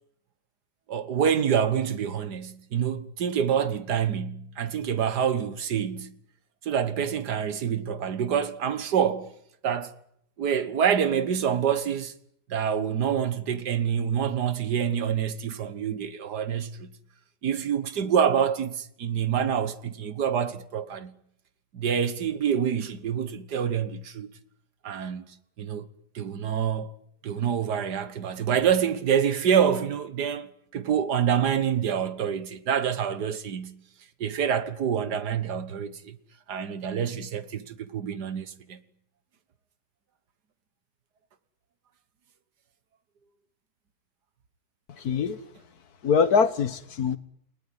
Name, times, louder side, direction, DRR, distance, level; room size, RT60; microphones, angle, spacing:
voice 1, 0.9-6.2 6.6-9.3 9.6-9.9 10.4-12.1 12.5-16.9 17.4-21.1 21.7-24.3 24.8-25.3 25.6-25.9 26.2-26.9 27.2-33.8 34.2-36.2 36.5-38.8, right 8 dB, 80° right, 1.9 m, -26 dB
voice 2, 45.0-45.4 46.0-47.2, left 6 dB, 70° left, 1.8 m, -23 dB
29.5 x 19.0 x 9.7 m
omnidirectional pair, 1.7 m